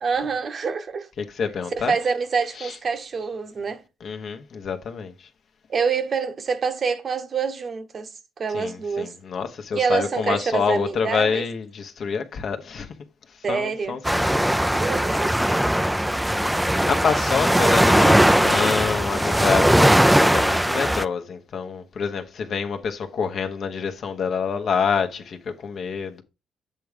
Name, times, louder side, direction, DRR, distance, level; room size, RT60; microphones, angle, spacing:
voice 1, 0.0-1.1 1.8-3.8 5.7-8.1 8.4-9.1 9.7-11.4 13.4-14.0 14.4-15.7, right 5 dB, 45° right, 1.0 m, -26 dB
voice 2, 1.2-1.9 2.6-2.8 4.0-5.3 8.5-12.9 13.5-14.3 16.3-26.2, left 6 dB, 60° left, 1.0 m, -27 dB
sound 1, 14.0-21.1, equal, 5° right, 0.4 m, -19 dB
7.7 x 3.5 x 5.0 m
cardioid pair, 90°, 0 cm